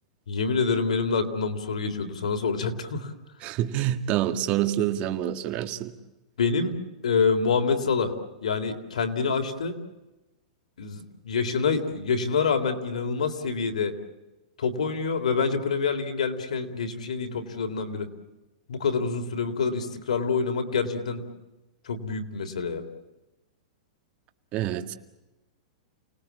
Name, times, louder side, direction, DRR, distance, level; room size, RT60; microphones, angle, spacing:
voice 1, 0.3-3.1 6.4-6.7 7.0-8.1 8.4-9.8 10.8-13.9 14.6-18.1 18.7-21.2 21.9-22.8, left 5 dB, 90° left, 3.4 m, -26 dB
voice 2, 3.4-5.9 24.5-24.9, right 12 dB, 35° right, 1.8 m, -27 dB
29.5 x 19.5 x 8.3 m
hypercardioid pair, 145°, 4 cm